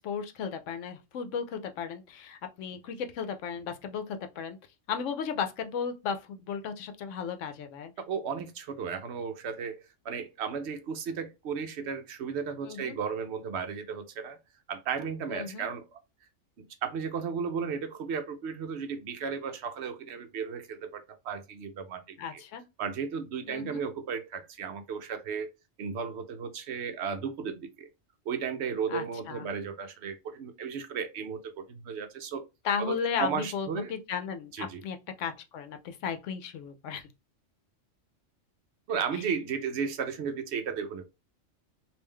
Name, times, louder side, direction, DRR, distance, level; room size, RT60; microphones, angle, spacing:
voice 1, 0.0-4.6 4.9-7.9 12.6-13.0 15.3-15.7 22.2-22.6 23.5-23.8 28.9-29.4 32.6-37.0 39.1-39.2, left 6 dB, 75° left, 0.9 m, -35 dB
voice 2, 8.1-14.4 14.7-16.0 16.6-22.4 22.8-25.5 25.8-27.9 28.3-32.4 32.8-33.9 34.5-34.8 38.9-41.0, right 6 dB, 65° right, 0.8 m, -34 dB
3.6 x 2.6 x 3.2 m
omnidirectional pair, 1.3 m